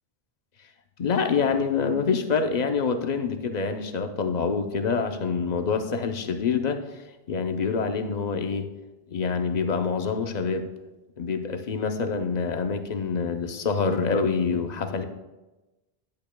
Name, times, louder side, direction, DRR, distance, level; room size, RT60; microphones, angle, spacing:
voice 1, 1.0-6.8 7.3-8.7 9.1-10.7 11.2-15.0, left 5 dB, 45° left, 6 dB, 0.7 m, -26 dB
10.5 x 8.6 x 2.2 m, 1.1 s
omnidirectional pair, 1.1 m